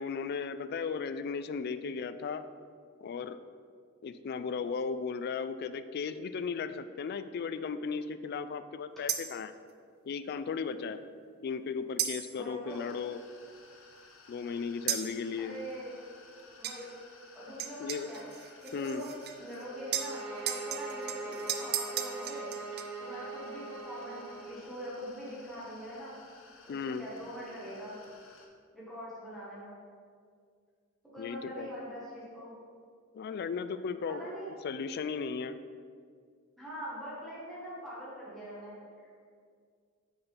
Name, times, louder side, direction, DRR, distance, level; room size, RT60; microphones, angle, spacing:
voice 1, 0.0-2.5 3.0-3.4 4.0-9.5 10.1-11.0 11.4-13.2 14.3-15.6 17.8-18.1 18.7-19.0 26.7-27.0 31.2-31.7 33.1-34.2 34.6-35.5, left 5 dB, 50° left, 12 dB, 0.3 m, -36 dB
sound 1, 9.1-9.4 12.0-12.4 14.9-15.2 16.6-16.8 17.6-19.6 19.9-22.8, right 9 dB, 50° right, 0.5 m, -35 dB
voice 2, 12.3-12.8 15.4-15.9 16.6-16.9 17.3-18.3 18.6-19.1 19.4-22.4 23.0-26.2 26.6-28.0 28.7-29.8 31.1-32.5 34.1-34.5 36.6-39.3, equal, ahead, -10 dB, 1.8 m, -43 dB
sound 2, 12.7-28.5, left 3 dB, 70° left, 0.9 m, -56 dB
sound 3, 19.7-24.6, right 2 dB, 85° right, 1.1 m, -41 dB
6.5 x 4.4 x 5.8 m, 2.1 s
head